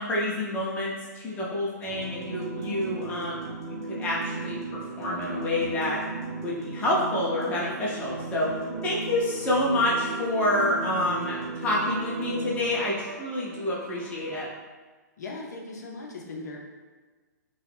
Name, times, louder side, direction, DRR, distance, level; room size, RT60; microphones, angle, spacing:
voice 1, 0.0-6.0 6.4-8.5 8.8-14.5, left 1 dB, 15° left, -5 dB, 0.6 m, -28 dB
sound 1, 1.8-14.5, right 3 dB, 55° right, 0.7 m, -36 dB
voice 2, 15.2-16.6, left 3 dB, 65° left, -1 dB, 0.7 m, -38 dB
3.1 x 2.3 x 3.3 m, 1.4 s
hypercardioid pair, 125°, 10 cm